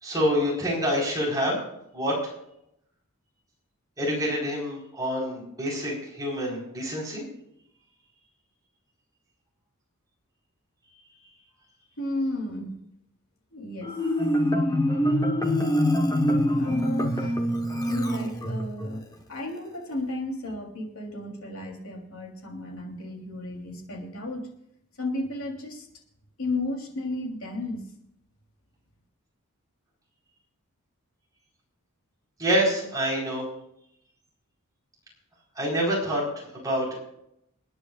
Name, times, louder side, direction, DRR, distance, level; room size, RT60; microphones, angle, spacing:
voice 1, 0.0-1.6 1.9-2.2 4.0-7.2 32.4-33.5 35.6-36.9, equal, 15° right, -4 dB, 4.6 m, -27 dB
voice 2, 12.0-12.7 13.5-14.0 16.6-17.5 17.9-24.5 25.0-25.9 26.4-27.9, left 2 dB, 65° left, 0 dB, 3.4 m, -33 dB
Marimba xylophone, 13.8-18.9, equal, 15° left, 1.3 m, -24 dB
28.5 x 9.8 x 2.5 m, 0.76 s
head